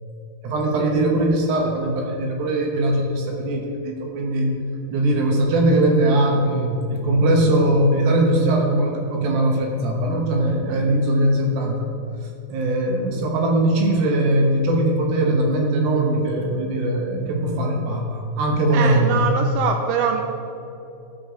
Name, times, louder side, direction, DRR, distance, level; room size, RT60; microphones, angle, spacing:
voice 1, 0.4-4.5 4.9-11.9 12.5-19.2, right 1 dB, 70° right, 1 dB, 2.5 m, -20 dB
voice 2, 18.7-20.2, right 7 dB, 85° right, 3 dB, 2.9 m, -23 dB
14.5 x 5.4 x 5.0 m, 2.8 s
omnidirectional pair, 5.2 m